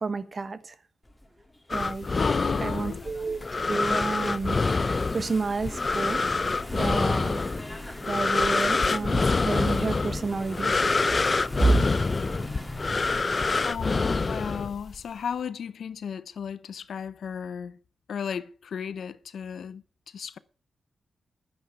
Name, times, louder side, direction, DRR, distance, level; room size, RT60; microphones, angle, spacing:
voice 1, 0.0-0.8 1.7-2.2 2.6-3.4 3.7-6.4 6.7-7.6 7.8-10.8 11.1-11.3 11.6-11.8, right 3 dB, 45° right, 1.3 m, -29 dB
Engine / Mechanisms, 1.0-13.2, left 1 dB, 10° left, 2.2 m, -42 dB
sound 1, 1.7-15.0, left 3 dB, 35° left, 0.6 m, -26 dB
voice 2, 2.2-3.1 13.6-17.8 18.1-20.4, left 7 dB, 75° left, 0.7 m, -35 dB
10.5 x 9.5 x 5.6 m
cardioid pair, 80°, 0 cm